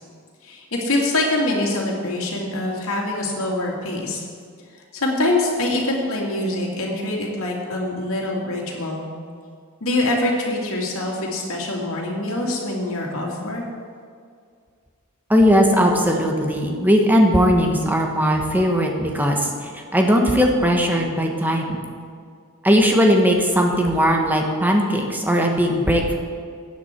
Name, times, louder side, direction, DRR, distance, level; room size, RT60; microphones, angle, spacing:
voice 1, 0.4-4.2 4.9-9.1 9.8-13.6, left 2 dB, 80° left, -2 dB, 2.5 m, -24 dB
voice 2, 15.3-21.8 22.6-26.2, equal, 10° right, 1 dB, 1.3 m, -18 dB
15.0 x 9.5 x 4.5 m, 2.1 s
head